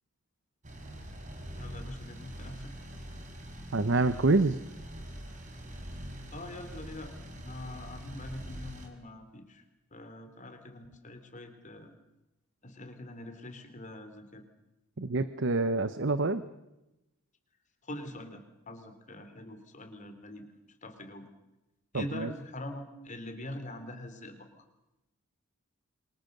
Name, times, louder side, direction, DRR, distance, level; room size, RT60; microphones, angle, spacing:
sound 1, 0.6-8.9, equal, 35° right, 4.4 m, -44 dB
voice 1, 1.6-2.7 6.0-7.1 7.4-9.6 9.9-11.9 12.6-14.4 17.8-20.5 20.8-21.3 21.9-24.5, left 1 dB, 35° left, 6 dB, 3.3 m, -44 dB
voice 2, 3.7-4.6 15.0-16.4 21.9-22.3, right 2 dB, 55° right, 13 dB, 0.9 m, -27 dB
28.0 x 24.0 x 6.7 m, 0.94 s
head